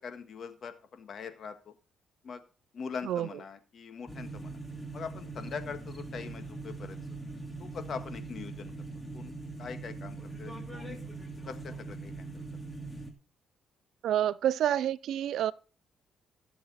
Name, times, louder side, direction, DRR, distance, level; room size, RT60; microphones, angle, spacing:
voice 1, 0.0-1.7 2.2-2.4 2.7-4.6 4.9-7.0 7.6-8.7 9.1-9.3 9.6-11.0 11.5-12.4, left 6 dB, 55° left, 1.6 m, -42 dB
voice 2, 3.0-3.4 14.0-15.5, right 11 dB, 75° right, 0.4 m, -28 dB
sound 1, 4.1-13.1, right 3 dB, 15° left, 2.4 m, -41 dB
16.0 x 7.1 x 4.1 m
cardioid pair, 90°, 0 cm